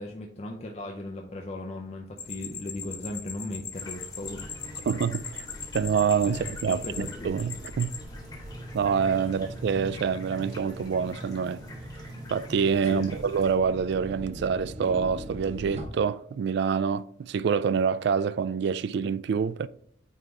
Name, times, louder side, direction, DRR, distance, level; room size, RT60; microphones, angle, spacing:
voice 1, 0.0-4.9 6.3-7.5 12.8-13.1, left 1 dB, 35° left, 0.6 m, -38 dB
sound 1, 2.2-8.0, left 6 dB, 55° left, 1.4 m, -40 dB
sound 2, 3.7-13.5, left 2 dB, 20° left, 1.5 m, -50 dB
sound 3, 4.2-15.9, equal, 35° right, 1.1 m, -41 dB
voice 2, 4.9-5.5 5.7-8.0 8.7-11.6 12.3-19.7, right 6 dB, 65° right, 0.3 m, -26 dB
9.0 x 3.3 x 3.6 m
head